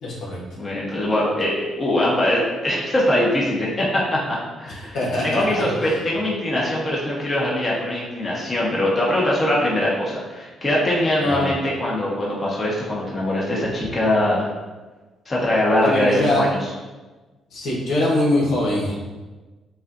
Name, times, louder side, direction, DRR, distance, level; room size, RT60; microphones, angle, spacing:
voice 1, 0.0-0.4 4.9-5.9 11.2-11.4 15.8-16.5 17.5-18.9, left 1 dB, 75° left, -5 dB, 1.4 m, -22 dB
voice 2, 0.6-5.0 5.2-14.5 15.2-16.7, left 1 dB, 25° left, -5 dB, 1.2 m, -22 dB
7.0 x 2.5 x 2.6 m, 1.2 s
cardioid pair, 90°, 0 cm